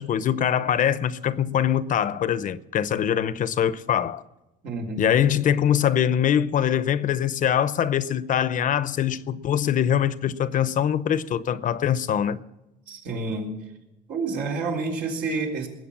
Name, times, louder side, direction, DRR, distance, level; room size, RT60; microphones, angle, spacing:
voice 1, 0.0-4.2 5.0-12.4, left 9 dB, 50° left, 0.7 m, -23 dB
voice 2, 4.6-5.0 12.9-13.6 14.1-15.7, right 3 dB, 75° right, 3.9 m, -29 dB
20.0 x 8.0 x 7.4 m
cardioid pair, 110°, 17 cm